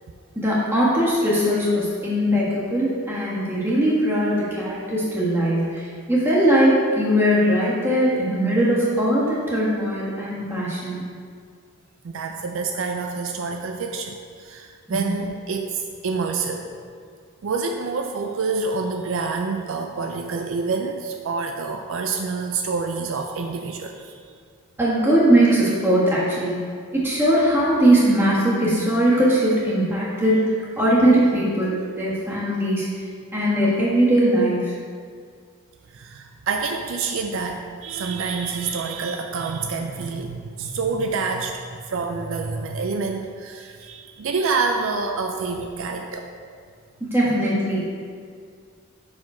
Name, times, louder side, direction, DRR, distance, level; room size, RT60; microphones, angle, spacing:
voice 1, 0.3-5.8 6.1-11.0 14.9-15.0 24.8-26.6 26.9-30.4 30.8-32.8 33.3-34.7 47.0-47.8, right 1 dB, 10° right, -8 dB, 1.4 m, -20 dB
voice 2, 12.0-16.7 17.4-24.3 35.9-41.6 41.9-46.3, right 4 dB, 60° right, 4 dB, 0.4 m, -27 dB
5.7 x 5.0 x 4.8 m, 2.1 s
head